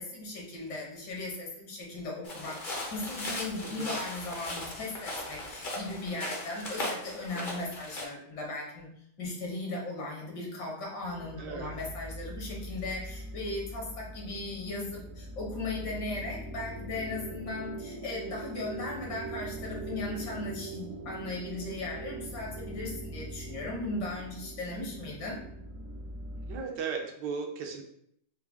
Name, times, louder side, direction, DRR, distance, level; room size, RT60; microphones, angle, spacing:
voice 1, 0.0-8.9 9.2-25.4, left 2 dB, 75° left, -2 dB, 1.7 m, -37 dB
sound 1, 2.2-8.0, left 1 dB, 50° left, 0.6 m, -38 dB
voice 2, 3.6-4.0 11.4-11.7 26.4-27.8, right 5 dB, 80° right, 2 dB, 1.3 m, -36 dB
sound 2, 11.0-26.6, right 2 dB, 65° right, 0.8 m, -42 dB
4.6 x 2.2 x 3.4 m, 0.71 s
omnidirectional pair, 1.9 m